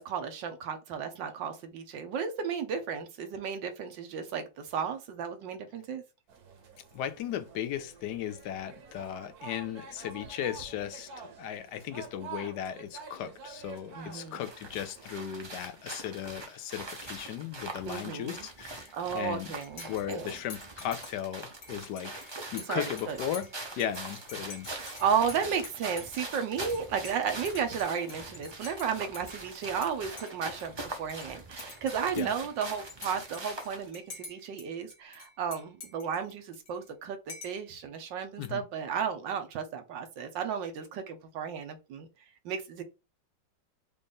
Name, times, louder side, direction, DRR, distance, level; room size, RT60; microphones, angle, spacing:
voice 1, 0.0-6.0 13.9-14.4 17.9-18.5 18.9-20.3 22.7-23.2 24.7-37.2 37.4-42.1 42.4-42.8, right 7 dB, 85° right, 1.6 m, -33 dB
sound 1, 6.3-15.2, right 5 dB, 60° right, 1.3 m, -48 dB
voice 2, 6.9-19.5 19.9-22.1 22.5-23.5 23.8-24.7 32.2-32.3 38.4-38.6, left 10 dB, 75° left, 1.1 m, -36 dB
sound 2, 14.4-33.9, right 2 dB, 35° right, 0.4 m, -43 dB
Dishes pots and pans / Cutlery silverware / Chink clink, 19.6-29.9 30.2-31.3 31.6-34.7 34.9-36.9 37.3-37.7, left 4 dB, 55° left, 1.6 m, -48 dB
5.1 x 2.6 x 3.5 m
omnidirectional pair, 1.9 m